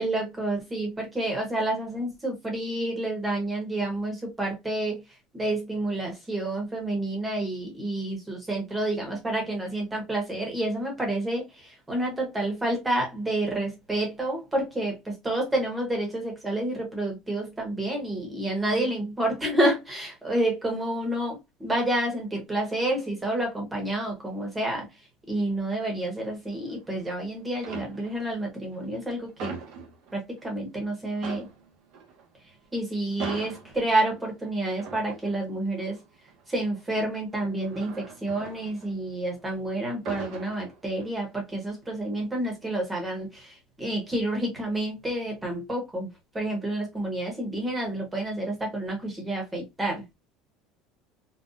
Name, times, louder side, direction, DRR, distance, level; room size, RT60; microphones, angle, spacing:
voice 1, 0.0-5.0 5.3-24.9 25.3-29.6 30.1-31.5 32.7-36.0 36.5-46.1 46.3-50.0, right 1 dB, 10° right, 1.0 m, -29 dB
sound 1, 26.5-27.2 27.5-28.4 28.7-30.5 30.8-30.9 31.1-39.5 39.8-41.3 41.7-42.0, right 5 dB, 60° right, 0.9 m, -42 dB
3.9 x 2.3 x 2.4 m
cardioid pair, 175°, 0 cm